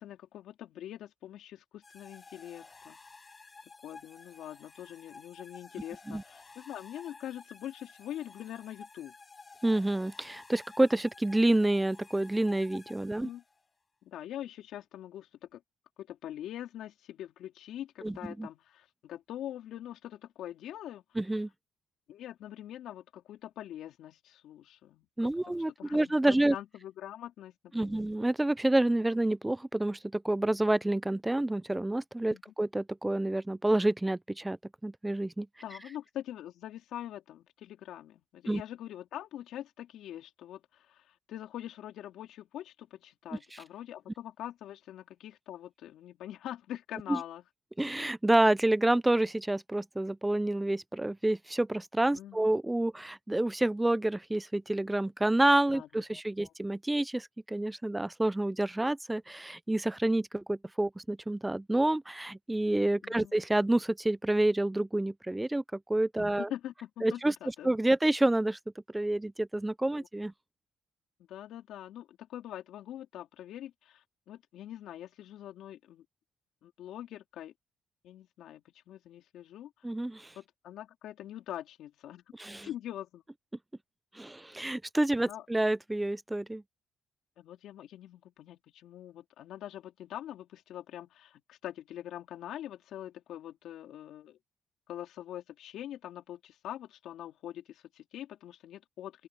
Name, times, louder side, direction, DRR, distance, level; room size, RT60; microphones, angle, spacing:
voice 1, 0.0-3.0 3.8-9.1 13.2-13.4 14.0-15.6 16.0-21.0 22.1-25.1 25.5-28.0 32.3-32.4 35.6-47.4 52.1-52.5 55.7-56.5 63.0-63.4 66.2-67.7 70.0-70.1 71.3-76.0 76.6-77.5 78.0-79.7 80.4-82.2 82.6-83.2 85.3-85.4 87.4-94.4 94.9-99.3, left 12 dB, 80° left, 4.0 m, -44 dB
sound 1, 1.8-13.6, left 4 dB, 30° left, 6.0 m, -53 dB
voice 2, 9.6-13.3 18.0-18.5 21.2-21.5 25.2-26.6 27.7-35.5 38.5-38.6 43.5-43.6 47.1-47.2 47.8-66.5 67.0-67.3 67.6-68.6 68.9-70.3 79.8-80.3 82.4-82.7 84.1-86.6, right 1 dB, 10° right, 0.5 m, -28 dB
open air
cardioid pair, 90°, 0 cm